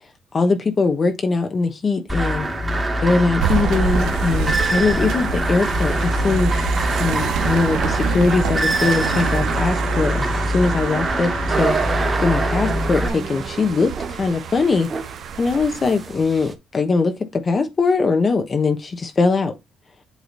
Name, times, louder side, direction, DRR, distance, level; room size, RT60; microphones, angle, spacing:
voice 1, 0.3-2.5 3.0-6.5 7.0-10.3 10.5-14.9 15.4-19.5, left 4 dB, 40° left, 1.0 m, -21 dB
sound 1, 2.1-13.1, right 1 dB, 20° right, 1.8 m, -23 dB
sound 2, 3.4-16.1, right 8 dB, 80° right, 0.7 m, -28 dB
sound 3, 11.5-16.5, right 5 dB, 35° right, 1.2 m, -29 dB
8.3 x 3.0 x 3.9 m
cardioid pair, 90°, 0 cm